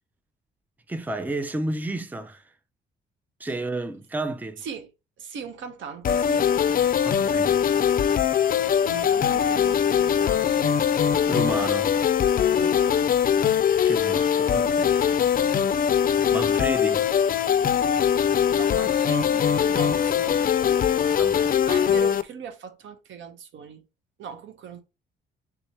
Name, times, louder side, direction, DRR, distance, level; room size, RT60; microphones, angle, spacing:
voice 1, 0.9-2.5 3.4-4.6 7.0-7.6 11.3-12.0 13.9-15.2 16.3-17.1 21.2-21.5, right 2 dB, 10° right, 0.5 m, -31 dB
voice 2, 4.6-4.9 5.2-6.9 8.9-10.7 12.6-13.1 15.3-16.2 18.5-20.9 21.7-23.8 24.2-24.8, right 7 dB, 70° right, 1.0 m, -39 dB
sound 1, 6.0-22.2, left 8 dB, 45° left, 0.4 m, -22 dB
3.6 x 2.9 x 4.5 m
cardioid pair, 90°, 20 cm